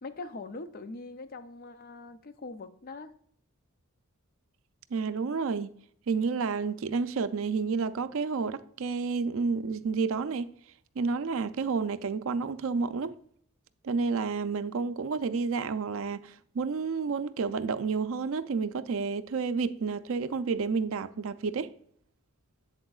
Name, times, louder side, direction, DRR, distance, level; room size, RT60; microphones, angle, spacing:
voice 1, 0.0-3.1, left 3 dB, 40° left, 0.5 m, -42 dB
voice 2, 4.9-5.8 6.1-10.5 11.0-13.2 13.8-21.7, right 5 dB, 65° right, 0.4 m, -30 dB
7.9 x 7.5 x 2.3 m
head